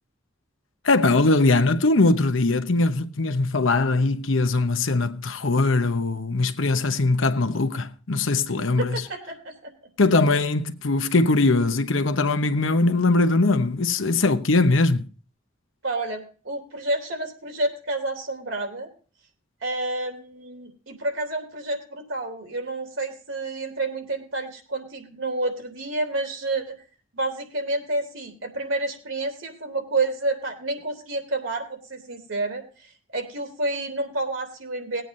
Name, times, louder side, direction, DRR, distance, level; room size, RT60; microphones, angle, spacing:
voice 1, 0.8-9.0 10.0-15.1, left 2 dB, 85° left, 0.9 m, -21 dB
voice 2, 8.8-9.7 15.8-18.9 19.6-26.8 27.1-35.0, right 2 dB, 85° right, 3.2 m, -29 dB
20.0 x 9.0 x 2.6 m
head